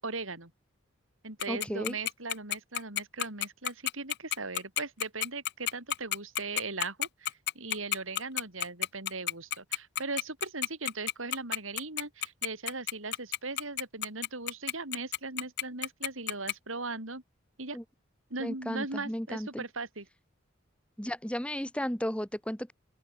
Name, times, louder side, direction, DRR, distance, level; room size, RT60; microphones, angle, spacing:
voice 1, 0.0-0.5 1.2-17.2 17.6-17.8 18.3-20.1, right 3 dB, 75° right, 5.4 m, -39 dB
Tick-tock, 1.4-16.5, left 12 dB, 55° left, 1.4 m, -30 dB
voice 2, 1.5-1.9 17.7-17.8 18.4-19.6 21.0-22.7, equal, 5° left, 2.7 m, -34 dB
open air
head